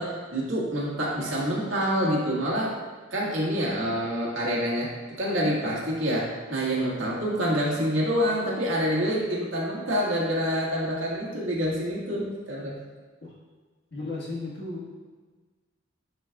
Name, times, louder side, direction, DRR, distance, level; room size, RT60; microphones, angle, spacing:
voice 1, 0.0-2.7 3.1-4.9 5.2-12.7, equal, 80° right, -5 dB, 1.8 m, -27 dB
voice 2, 13.9-14.9, left 2 dB, 60° left, -5 dB, 1.6 m, -35 dB
10.5 x 4.1 x 2.4 m, 1.4 s
head